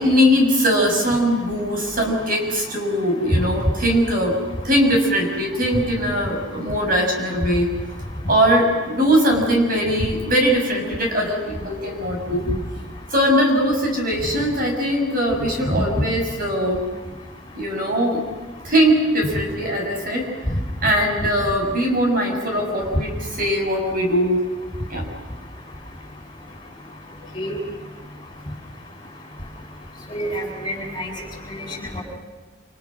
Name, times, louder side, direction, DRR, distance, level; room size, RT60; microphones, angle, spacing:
voice 1, 0.0-4.4 4.6-7.7 8.3-12.5 13.1-16.8 17.5-18.2 18.6-20.3 20.8-24.4 24.9-25.0, equal, 45° right, 1 dB, 6.8 m, -20 dB
voice 2, 30.1-31.1 31.5-32.0, equal, 20° left, 0 dB, 7.8 m, -28 dB
29.5 x 28.0 x 6.4 m, 1.3 s
head